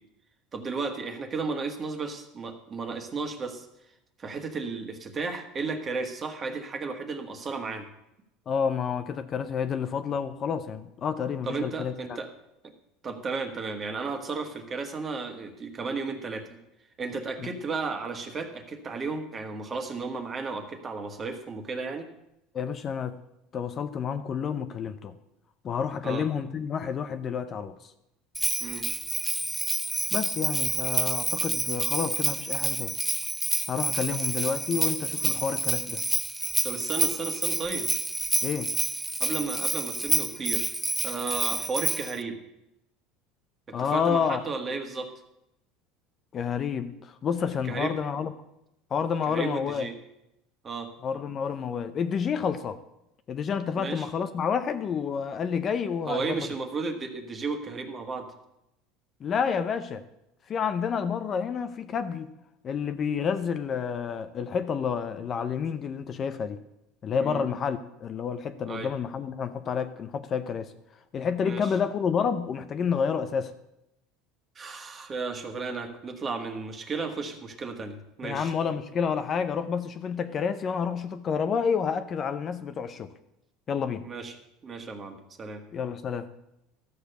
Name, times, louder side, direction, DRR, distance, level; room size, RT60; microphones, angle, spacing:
voice 1, 0.5-3.7 4.2-7.9 11.4-12.3 12.6-12.7 13.0-16.6 17.0-22.1 26.0-26.3 28.6-28.9 36.6-37.9 39.2-40.7 41.0-42.3 43.7-45.1 47.6-47.9 49.3-49.9 50.6-50.9 53.7-54.1 56.1-58.3 67.2-67.4 68.7-68.9 71.4-71.7 74.5-78.5 84.0-84.4 84.6-85.6, right 4 dB, 25° right, 5 dB, 1.6 m, -34 dB
voice 2, 8.5-12.2 17.4-17.5 22.5-23.2 23.5-25.1 25.6-27.9 30.1-32.9 33.7-36.0 38.4-38.7 43.7-44.4 46.3-48.3 48.9-49.9 51.0-52.8 53.3-56.5 59.2-60.0 60.5-62.3 62.6-66.6 67.0-70.7 71.1-73.5 78.2-83.1 83.7-84.0 85.7-86.3, left 6 dB, 35° left, 10 dB, 0.6 m, -29 dB
Bell, 28.3-42.2, right 1 dB, 5° right, 0.4 m, -28 dB
13.0 x 6.7 x 6.7 m, 0.85 s
supercardioid pair, 125°, 0 cm